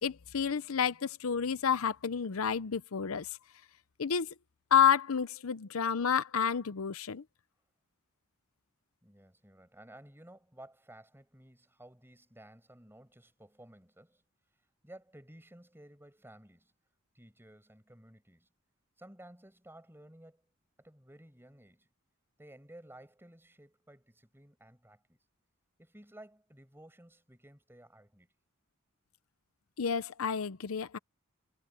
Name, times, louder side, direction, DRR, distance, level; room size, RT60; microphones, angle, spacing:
voice 1, 0.0-3.3 4.0-4.3 4.7-7.2 29.8-31.0, left 7 dB, 75° left, 0.7 m, -30 dB
voice 2, 9.0-14.2 14.8-16.7 17.1-18.5 19.0-20.4 20.8-21.9 22.4-25.2 25.8-28.3, right 1 dB, 10° right, 6.8 m, -55 dB
head